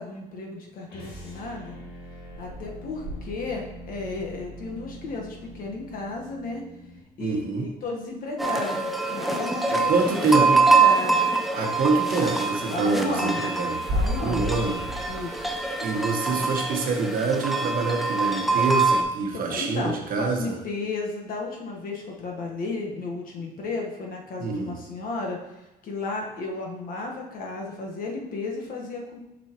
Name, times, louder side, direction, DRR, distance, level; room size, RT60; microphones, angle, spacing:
voice 1, 0.0-1.8 2.4-6.6 7.2-11.3 12.7-13.5 13.9-14.5 15.1-15.5 19.3-25.4 25.8-29.2, left 3 dB, 55° left, 0 dB, 1.4 m, -33 dB
sound 1, 0.9-7.1, equal, 70° left, 2.0 m, -43 dB
sound 2, 2.3-8.0 8.2-18.7, equal, 85° right, 1.3 m, -37 dB
voice 2, 7.2-7.7 9.7-10.6 11.6-13.8 14.2-14.9 15.7-20.6 24.4-24.8, right 4 dB, 60° right, 2 dB, 1.2 m, -26 dB
sound 3, 8.4-19.0, right 4 dB, ahead, 0.6 m, -24 dB
6.7 x 5.4 x 3.0 m, 0.98 s
cardioid pair, 110°, 17 cm